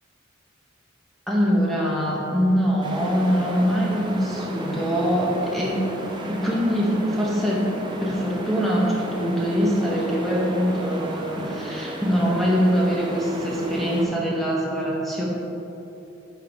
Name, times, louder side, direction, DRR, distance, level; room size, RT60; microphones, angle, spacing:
voice 1, 1.3-5.8 6.3-7.7 8.0-15.3, equal, ahead, -5 dB, 1.3 m, -23 dB
sound 1, 2.8-14.0, right 1 dB, 25° right, 0.7 m, -34 dB
8.3 x 3.8 x 5.4 m, 2.9 s
head